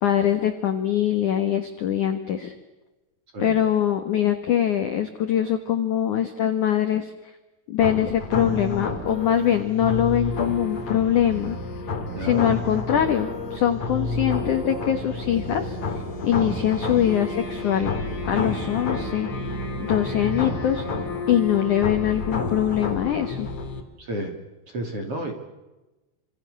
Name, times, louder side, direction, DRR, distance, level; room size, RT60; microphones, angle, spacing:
voice 1, 0.0-2.5 3.4-7.1 7.7-11.6 12.2-15.8 16.2-17.9 18.3-19.3 19.8-20.9 21.3-23.5, left 10 dB, 75° left, 7 dB, 1.8 m, -23 dB
sound 1, 7.8-23.8, left 3 dB, 35° left, 2.8 m, -30 dB
voice 2, 12.1-12.5 20.2-20.6 24.0-24.3 24.7-25.3, right 1 dB, 35° right, 4 dB, 2.7 m, -31 dB
28.5 x 27.0 x 6.7 m, 1.1 s
omnidirectional pair, 5.8 m